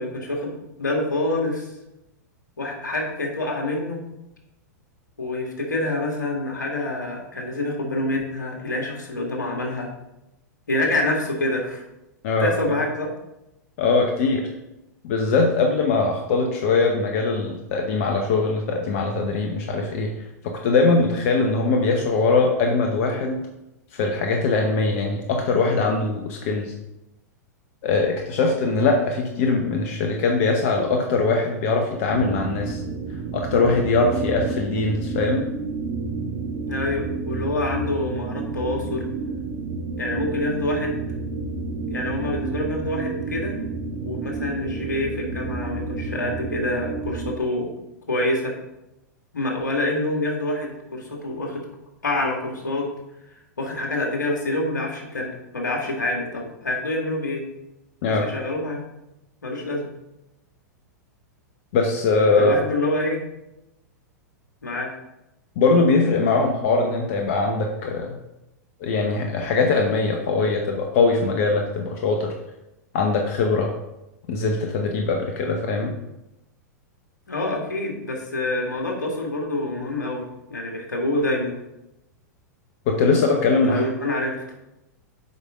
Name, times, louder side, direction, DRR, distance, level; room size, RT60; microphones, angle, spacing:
voice 1, 0.0-1.7 2.6-4.0 5.2-9.9 10.7-11.8 12.4-13.1 36.7-39.1 40.0-40.9 41.9-43.6 44.1-47.7 48.1-48.5 49.3-51.6 52.0-52.9 53.6-57.4 58.1-58.8 59.4-59.9 62.4-63.2 64.6-64.9 77.3-80.2 80.5-81.6 83.6-84.4, left 1 dB, 85° left, 0 dB, 2.0 m, -26 dB
voice 2, 13.8-14.5 15.0-20.1 20.4-23.4 23.9-26.7 27.8-32.8 33.3-35.5 58.0-58.3 61.7-62.5 65.6-68.1 68.8-72.3 72.9-73.7 74.3-75.9 82.9-83.8, left 3 dB, 55° left, 2 dB, 1.1 m, -21 dB
sound 1, 32.1-47.4, right 4 dB, 55° right, 1.2 m, -30 dB
8.0 x 5.3 x 3.7 m, 0.91 s
hypercardioid pair, 105°, 10 cm